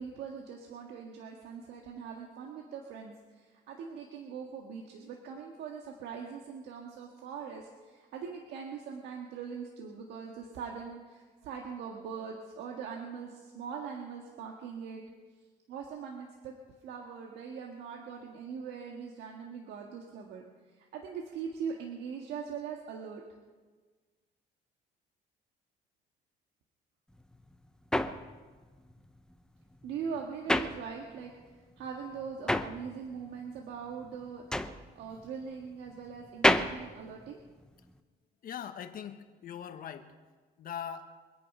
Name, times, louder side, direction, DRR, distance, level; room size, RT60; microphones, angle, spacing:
voice 1, 0.0-15.0 15.7-16.5 16.8-23.2 29.8-34.6 35.0-37.4, right 6 dB, 80° right, 0 dB, 1.9 m, -41 dB
sound 1, 27.1-31.4 31.7-38.0, left 1 dB, 5° left, 0.8 m, -32 dB
voice 2, 38.4-40.1 40.6-41.1, left 8 dB, 55° left, 8 dB, 1.5 m, -41 dB
24.5 x 9.6 x 5.6 m, 1.4 s
cardioid pair, 110°, 17 cm